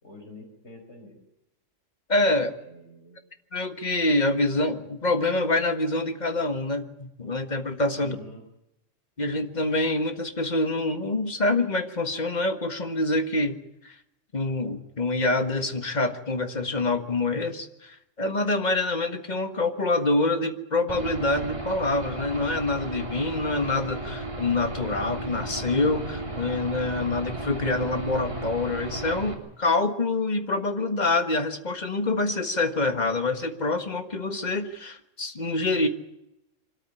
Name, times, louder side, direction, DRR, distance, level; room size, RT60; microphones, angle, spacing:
voice 1, 0.0-1.2 2.7-3.2 8.0-8.4, left 1 dB, 60° left, 3 dB, 5.6 m, -46 dB
voice 2, 2.1-2.6 3.5-8.2 9.2-13.6 13.8-14.0 14.3-35.9, left 2 dB, 35° left, 8 dB, 1.6 m, -26 dB
Aircraft / Engine, 20.9-29.3, right 2 dB, 25° right, 3.1 m, -34 dB
24.5 x 13.5 x 9.7 m, 0.88 s
omnidirectional pair, 1.3 m